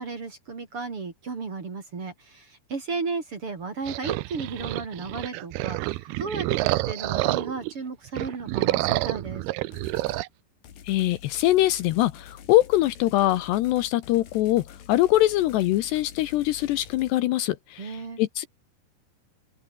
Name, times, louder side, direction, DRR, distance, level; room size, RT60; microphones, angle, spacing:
voice 1, 0.0-9.4 17.8-18.2, right 4 dB, 35° right, 3.0 m, -34 dB
sound 1, 3.9-7.7 8.1-10.3, right 19 dB, 80° right, 2.2 m, -28 dB
sound 2, 9.7-10.3 10.6-17.1, left 9 dB, 55° left, 3.7 m, -47 dB
voice 2, 10.8-18.5, left 15 dB, 75° left, 2.8 m, -23 dB
open air
omnidirectional pair, 5.3 m